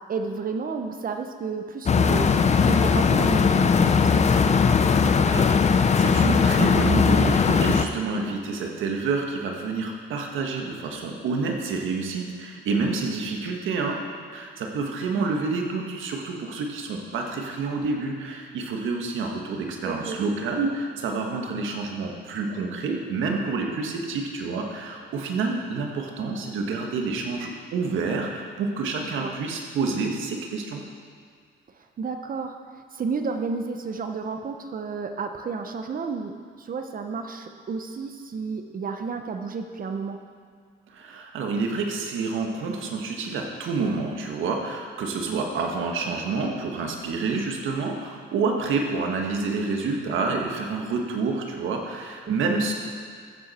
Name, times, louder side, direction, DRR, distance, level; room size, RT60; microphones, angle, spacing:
voice 1, 0.1-2.3 2.6-4.4 4.8-5.2 15.1-15.3 19.8-20.2 29.0-29.3 31.8-36.3 36.6-40.2 45.3-45.4 52.3-52.7, right 5 dB, 45° right, 5 dB, 0.9 m, -32 dB
sound 1, 1.9-7.9, left 5 dB, 35° left, 0.6 m, -19 dB
voice 2, 5.3-5.6 5.9-30.8 40.9-52.7, right 4 dB, 80° right, 2 dB, 1.5 m, -28 dB
14.0 x 8.1 x 4.3 m, 2.1 s
cardioid pair, 90°, 20 cm